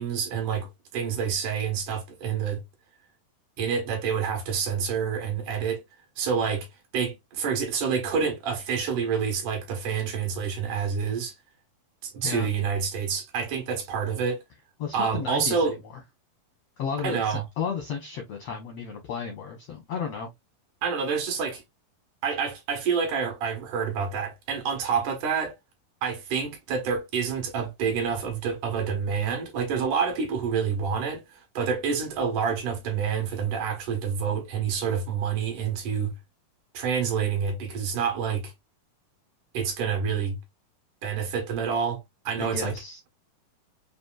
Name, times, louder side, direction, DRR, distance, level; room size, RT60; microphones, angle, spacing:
voice 1, 0.0-2.6 3.6-5.8 6.2-6.7 6.9-11.4 12.0-14.4 14.9-15.8 17.0-17.4 20.8-21.6 22.2-25.5 26.0-36.1 36.7-38.5 39.5-40.4 41.0-42.7, right 6 dB, 65° right, 2.5 m, -28 dB
voice 2, 14.8-15.8 16.8-20.3 42.4-43.0, left 6 dB, 75° left, 1.4 m, -33 dB
6.0 x 2.7 x 2.3 m
omnidirectional pair, 4.2 m